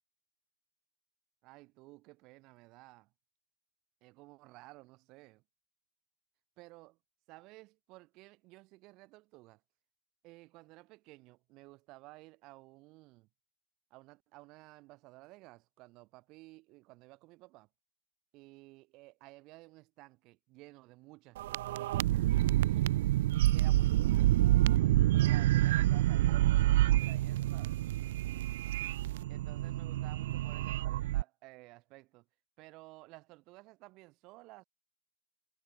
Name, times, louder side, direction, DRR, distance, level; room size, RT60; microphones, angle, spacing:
voice 1, 1.4-3.1 4.0-5.4 6.6-7.0 7.3-9.6 10.2-13.3 13.9-17.7 18.3-22.9 23.5-24.3 25.2-27.8 29.3-32.2 32.6-34.6, right 22 dB, 35° right, 7.9 m, -55 dB
sound 1, 21.4-31.2, right 15 dB, 60° right, 0.9 m, -28 dB
supercardioid pair, 160°, 0 cm